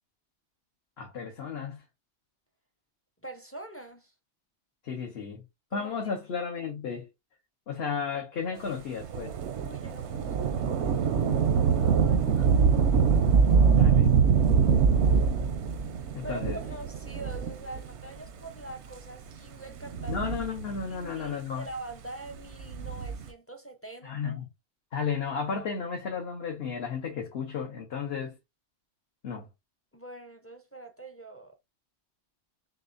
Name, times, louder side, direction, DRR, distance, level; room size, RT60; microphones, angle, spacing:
voice 1, 1.0-1.8 4.8-5.4 5.7-7.1 7.7-9.3 13.7-14.2 16.1-16.6 20.1-21.7 24.0-24.5 24.9-28.3 29.2-29.5, left 6 dB, 65° left, 1.2 m, -33 dB
voice 2, 3.2-4.1 5.7-5.9 8.6-8.8 9.6-12.4 16.2-20.2 20.9-24.4 29.9-31.5, right 2 dB, 20° left, 0.4 m, -44 dB
Thunder / Rain, 9.0-18.0 18.7-18.8 19.7-21.0 22.5-23.3, right 6 dB, 85° right, 0.9 m, -24 dB
6.2 x 2.2 x 2.5 m
omnidirectional pair, 1.1 m